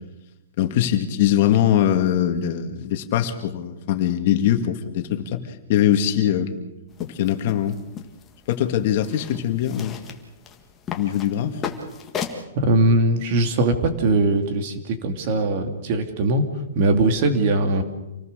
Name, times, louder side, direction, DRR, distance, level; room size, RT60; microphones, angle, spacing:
voice 1, 0.6-6.6 7.0-7.8 8.5-10.0 10.9-11.6, left 10 dB, 40° left, 7 dB, 2.2 m, -22 dB
sound 1, 6.9-12.4, left 7 dB, 15° left, 1.8 m, -36 dB
voice 2, 12.6-16.4 16.7-17.8, right 2 dB, 40° right, 7 dB, 2.4 m, -20 dB
27.5 x 18.5 x 6.7 m, 0.97 s
hypercardioid pair, 165°, 0 cm